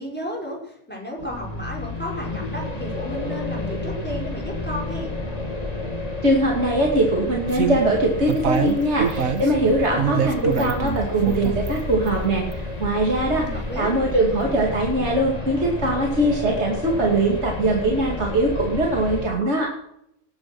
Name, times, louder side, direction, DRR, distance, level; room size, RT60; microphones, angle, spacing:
voice 1, 0.0-5.2 13.3-13.9, equal, 5° left, -1 dB, 5.6 m, -33 dB
sound 1, 1.2-19.3, left 2 dB, 30° left, 2.7 m, -31 dB
voice 2, 6.2-19.7, right 1 dB, 55° right, -1 dB, 2.9 m, -21 dB
sound 2, 7.5-7.8 8.2-9.5 10.0-11.0 11.3-11.8 12.1-12.2 12.5-12.6, right 7 dB, 75° right, 1.8 m, -24 dB
19.5 x 9.6 x 6.1 m, 0.77 s
omnidirectional pair, 1.4 m